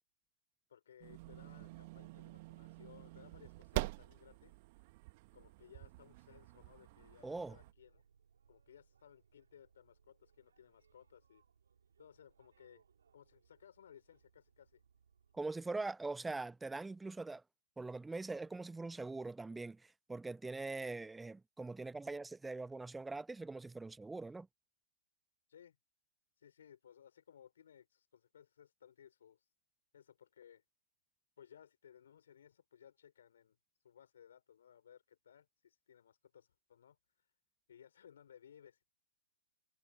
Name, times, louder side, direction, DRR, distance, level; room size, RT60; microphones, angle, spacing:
voice 1, 0.7-4.9 5.3-8.0 8.5-11.4 12.0-12.8 13.1-14.8 25.5-25.8 26.4-29.5 29.9-30.6 31.4-33.6 33.8-37.3 37.7-38.9, left 9 dB, 60° left, 5.5 m, -61 dB
sound 1, 1.0-7.7, right 22 dB, 40° right, 1.7 m, -46 dB
Boat Water vehicle, 6.7-15.5, right 7 dB, 70° right, 6.3 m, -72 dB
voice 2, 7.2-7.6 15.3-17.4 17.8-24.5, right 3 dB, 5° right, 0.4 m, -42 dB
figure-of-eight pair, 120°, 0 cm